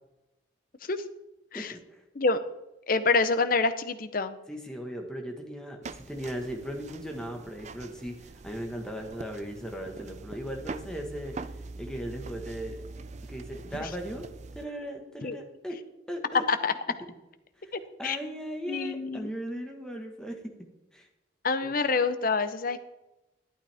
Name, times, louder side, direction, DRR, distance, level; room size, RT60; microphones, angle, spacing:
voice 1, 1.5-2.0 4.5-11.4 11.8-12.8 13.3-14.3 14.5-15.8 16.1-16.4 17.6-17.7 18.0-20.4 20.9-21.1 21.6-21.7, equal, 5° left, 2 dB, 1.4 m, -37 dB
voice 2, 2.9-4.4 13.8-13.9 15.2-15.4 16.5-16.7 17.7-18.2 18.7-19.3 21.4-22.8, left 4 dB, 45° left, 11 dB, 0.7 m, -27 dB
Creaky Woody Floor, 5.8-14.7, right 3 dB, 35° right, 0.4 m, -43 dB
12.0 x 11.0 x 3.5 m, 0.97 s
head